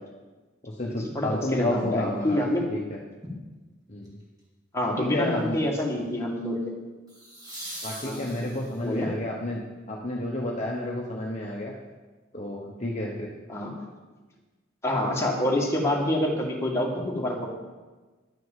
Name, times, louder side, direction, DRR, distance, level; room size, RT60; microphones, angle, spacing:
voice 1, 0.6-2.4 2.7-3.0 3.9-4.2 5.0-5.6 7.8-11.7 12.3-13.3, left 1 dB, 35° left, -2 dB, 1.1 m, -31 dB
voice 2, 1.1-2.7 4.7-6.7 8.0-8.3 8.8-9.1 13.5-13.7 14.8-17.5, left 1 dB, 15° left, -2 dB, 2.0 m, -27 dB
sound 1, 4.0-4.4 7.1-9.0 11.8-11.9, right 1 dB, 20° right, 2.9 m, -41 dB
11.0 x 6.5 x 7.4 m, 1.3 s
head